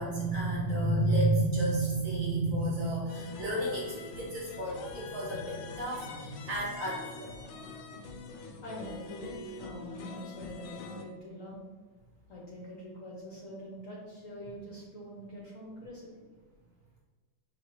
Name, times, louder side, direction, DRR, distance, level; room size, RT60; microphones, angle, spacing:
voice 1, 0.0-7.3, right 2 dB, 55° right, -4 dB, 1.1 m, -31 dB
sound 1, 3.1-11.0, left 4 dB, 85° left, 1.4 m, -45 dB
voice 2, 8.6-11.6 12.3-16.2, equal, 55° left, -4 dB, 0.9 m, -44 dB
5.0 x 2.9 x 2.9 m, 1.3 s
omnidirectional pair, 2.1 m